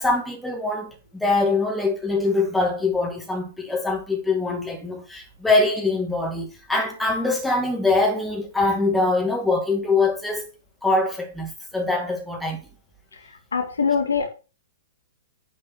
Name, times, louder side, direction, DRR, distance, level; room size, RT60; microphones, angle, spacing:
voice 1, 0.0-10.5 10.8-12.6, left 3 dB, 5° left, 2.4 m, -23 dB
voice 2, 13.5-14.3, left 6 dB, 75° left, 2.0 m, -22 dB
9.8 x 5.5 x 4.4 m
figure-of-eight pair, 110°, 0 cm